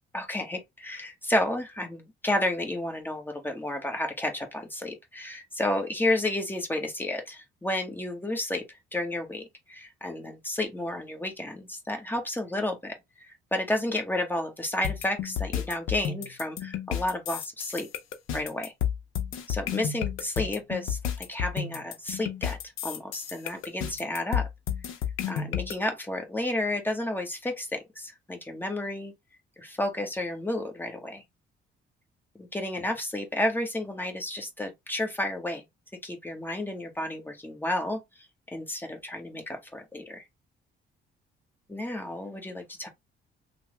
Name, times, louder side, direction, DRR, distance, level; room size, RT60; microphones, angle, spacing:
voice 1, 0.1-8.6 8.9-17.9 18.3-18.7 19.5-24.5 25.3-29.1 29.6-31.2 32.3-35.6 36.0-40.2 41.7-42.9, left 1 dB, 10° left, 1.0 m, -31 dB
sound 1, 14.8-25.7, left 9 dB, 85° left, 0.6 m, -31 dB
3.2 x 2.1 x 3.0 m
cardioid pair, 90°, 20 cm